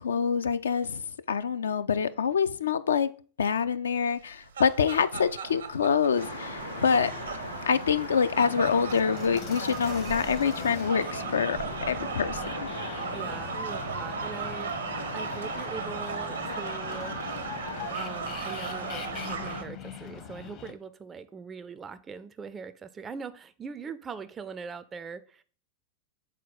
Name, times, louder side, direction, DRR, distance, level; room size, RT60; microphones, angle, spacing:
voice 1, 0.0-3.1 3.4-7.1 7.7-12.7, left 6 dB, 70° left, 0.3 m, -26 dB
sound 1, 4.2-19.6, right 6 dB, 70° right, 0.6 m, -37 dB
sound 2, 6.2-19.6, equal, 90° left, 1.1 m, -39 dB
sound 3, 8.3-20.7, left 7 dB, 40° left, 0.7 m, -42 dB
voice 2, 13.1-17.2 18.0-25.4, right 5 dB, 20° right, 0.3 m, -41 dB
6.4 x 4.1 x 4.0 m
figure-of-eight pair, 90°, 0 cm